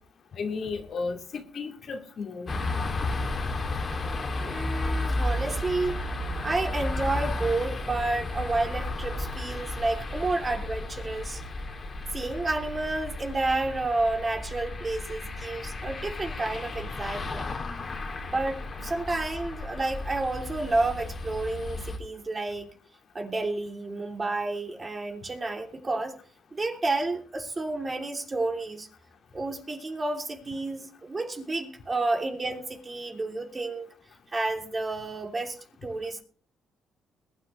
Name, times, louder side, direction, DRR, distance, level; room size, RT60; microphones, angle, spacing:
voice 1, 0.4-2.5, left 4 dB, 60° left, 2.4 m, -34 dB
sound 1, 2.5-22.0, left 2 dB, 40° left, 2.6 m, -33 dB
voice 2, 4.4-6.0 6.4-11.4 12.1-17.6 18.2-22.7 23.1-26.2 26.5-28.9 29.3-33.9 34.3-36.2, right 2 dB, 30° right, 3.1 m, -30 dB
21.5 x 9.9 x 3.3 m
cardioid pair, 90°, 0 cm